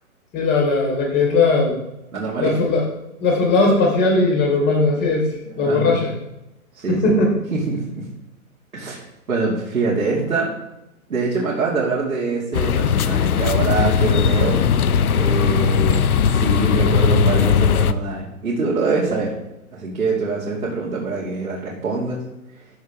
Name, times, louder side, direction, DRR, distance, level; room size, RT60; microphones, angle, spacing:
voice 1, 0.3-1.7 2.4-2.8 3.2-5.3 5.6-6.1 6.9-7.3, left 3 dB, 25° left, -1 dB, 3.5 m, -18 dB
voice 2, 2.1-2.6 5.5-6.0 6.7-7.2 7.5-8.1 8.7-10.5 11.1-14.6 15.2-19.3 19.7-22.2, right 3 dB, 85° right, -5 dB, 2.7 m, -24 dB
sound 1, 12.5-17.9, left 6 dB, 80° left, 0.7 m, -18 dB
13.0 x 6.5 x 3.7 m, 0.93 s
hypercardioid pair, 130°, 43 cm